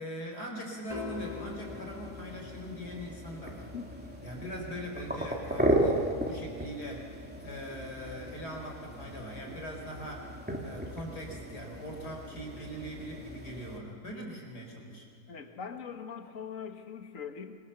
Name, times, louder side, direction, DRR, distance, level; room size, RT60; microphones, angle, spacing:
voice 1, 0.0-3.7 4.2-7.1 7.4-10.3 10.6-15.1, equal, 75° left, 1 dB, 5.3 m, -41 dB
sound 1, 0.9-3.3, left 8 dB, 30° left, 0.8 m, -44 dB
sound 2, 0.9-13.8, right 1 dB, 5° right, 2.7 m, -36 dB
voice 2, 15.3-17.6, left 6 dB, 55° left, 5 dB, 2.0 m, -41 dB
25.5 x 23.5 x 7.0 m, 2.3 s
omnidirectional pair, 1.7 m